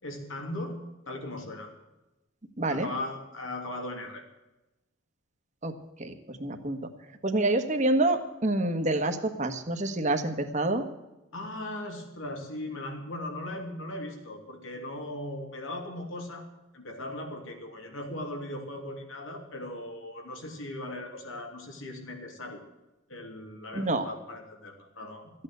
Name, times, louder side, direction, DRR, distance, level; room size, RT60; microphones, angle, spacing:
voice 1, 0.0-0.8 1.1-1.7 2.7-4.3 11.3-16.5 16.7-22.6 23.1-25.3, left 1 dB, 80° left, 3 dB, 3.0 m, -38 dB
voice 2, 2.6-2.9 5.6-5.7 6.0-6.9 7.2-10.9 23.7-24.1, right 2 dB, 35° right, 6 dB, 1.4 m, -27 dB
14.5 x 8.9 x 8.0 m, 1.0 s
head